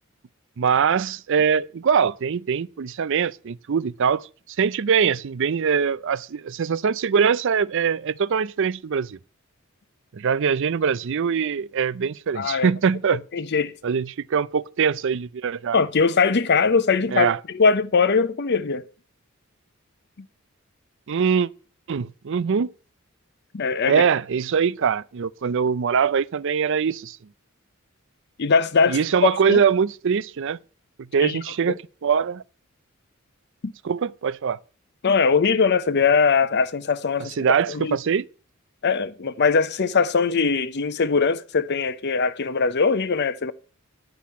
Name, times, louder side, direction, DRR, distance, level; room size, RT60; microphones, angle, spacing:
voice 1, 0.6-4.3 4.6-9.2 10.1-13.2 13.8-15.8 17.1-17.4 21.1-21.5 21.9-22.7 23.9-27.2 28.9-30.6 31.1-32.4 33.8-34.6 37.2-38.2, right 6 dB, 60° right, 0.5 m, -22 dB
voice 2, 12.3-12.7 13.3-13.7 15.7-17.3 17.5-18.8 23.5-24.1 28.4-29.0 29.5-29.6 31.2-31.4 33.6-33.7 35.0-37.3 37.7-38.0 38.8-43.5, left 5 dB, 55° left, 0.7 m, -21 dB
10.0 x 6.0 x 8.5 m
head